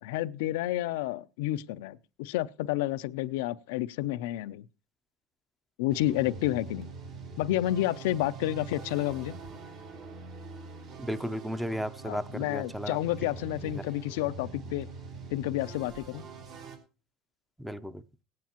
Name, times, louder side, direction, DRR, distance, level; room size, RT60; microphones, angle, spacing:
voice 1, 0.0-4.6 5.8-6.9 7.4-9.4 12.0-14.9 15.3-16.3, left 14 dB, 90° left, 0.5 m, -30 dB
sound 1, 5.9-16.8, right 4 dB, 65° right, 3.3 m, -44 dB
voice 2, 11.0-13.0 17.6-18.0, equal, ahead, 0.6 m, -34 dB
18.0 x 9.4 x 2.9 m
supercardioid pair, 115°, 0 cm